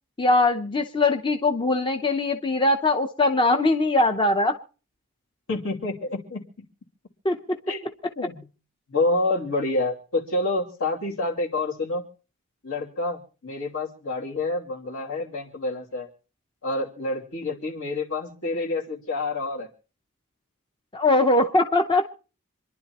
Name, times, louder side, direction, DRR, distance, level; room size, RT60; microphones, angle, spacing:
voice 1, 0.2-4.6 7.2-7.6 20.9-22.1, left 2 dB, 20° left, 5 dB, 0.7 m, -21 dB
voice 2, 5.5-6.4 7.7-7.9 8.2-8.5 8.9-12.0 12.6-16.1 16.6-19.7, left 2 dB, 65° left, -1 dB, 2.7 m, -28 dB
27.0 x 11.0 x 3.0 m, 0.37 s
head